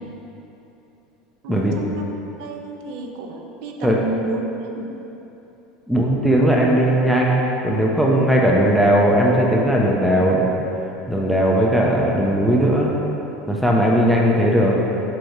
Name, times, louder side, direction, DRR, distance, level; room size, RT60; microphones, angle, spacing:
voice 1, 1.4-4.5 4.8-5.0, right 2 dB, 50° right, 2 dB, 0.6 m, -31 dB
voice 2, 5.9-10.5 11.1-12.9 13.5-14.8, right 1 dB, ahead, -3 dB, 0.4 m, -18 dB
7.5 x 2.7 x 4.9 m, 3.0 s
cardioid pair, 180°, 0 cm